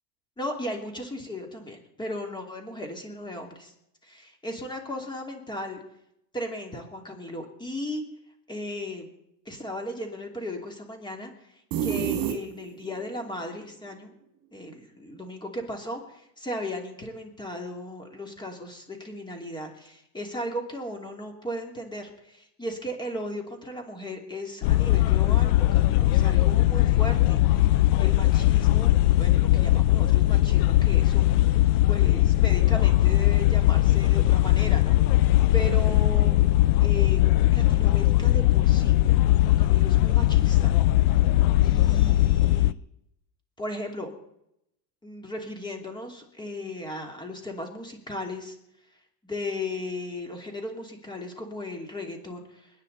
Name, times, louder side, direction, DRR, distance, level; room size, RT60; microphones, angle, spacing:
voice 1, 0.4-3.7 4.0-5.8 6.3-8.0 8.5-9.1 9.4-11.3 11.8-14.1 14.5-31.6 31.9-35.0 35.5-36.4 36.8-37.2 37.5-38.9 39.4-40.8 41.6-42.7 43.6-44.1 45.0-48.6 49.2-52.7, left 1 dB, 10° left, 3 dB, 2.8 m, -36 dB
sound 1, 11.7-12.9, right 9 dB, 55° right, 2.8 m, -28 dB
sound 2, 24.6-42.7, left 15 dB, 60° left, 0.6 m, -20 dB
29.5 x 9.9 x 4.2 m, 0.81 s
supercardioid pair, 125°, 50 cm